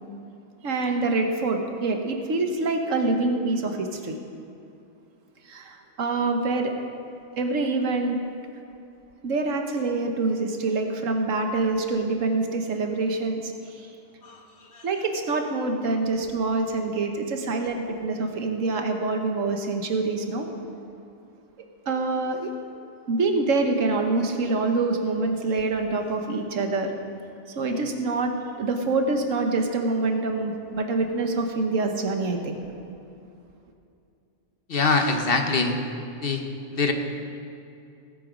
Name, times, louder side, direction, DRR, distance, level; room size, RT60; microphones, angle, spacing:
voice 1, 0.6-4.2 5.5-6.7 7.4-8.2 9.2-13.9 14.8-20.5 21.9-22.5 23.1-26.9 27.6-28.3 28.6-32.6, right 3 dB, 90° right, 4 dB, 1.5 m, -25 dB
voice 2, 34.7-35.8 36.2-36.4 36.7-36.9, left 4 dB, 50° left, 5 dB, 1.0 m, -23 dB
17.5 x 7.7 x 5.1 m, 2.6 s
omnidirectional pair, 1.3 m